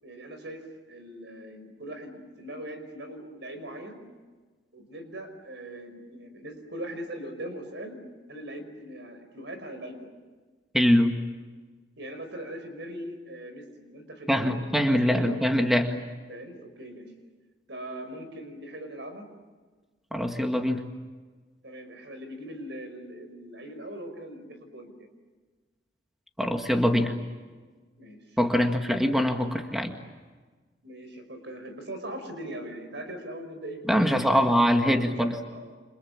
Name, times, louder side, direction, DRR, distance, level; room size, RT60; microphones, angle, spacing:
voice 1, 0.0-4.0 4.7-8.0 8.3-10.1 12.0-14.6 15.1-15.4 16.3-17.1 17.7-19.3 21.6-25.1 28.0-28.4 30.8-34.4 34.8-35.8, right 1 dB, 65° right, 7 dB, 5.4 m, -40 dB
voice 2, 10.7-11.2 14.3-16.0 20.1-20.8 26.4-27.1 28.4-30.0 33.9-35.4, equal, ahead, 4 dB, 1.9 m, -23 dB
29.5 x 27.5 x 7.3 m, 1.4 s
head